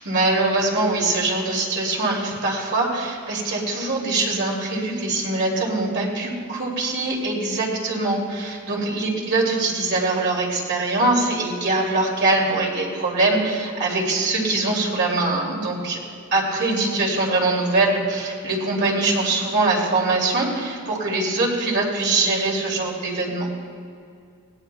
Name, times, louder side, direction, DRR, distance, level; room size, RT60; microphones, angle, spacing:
voice 1, 0.0-16.0 16.3-23.5, right 2 dB, 55° right, -2 dB, 2.7 m, -23 dB
20.0 x 18.0 x 2.3 m, 2.4 s
head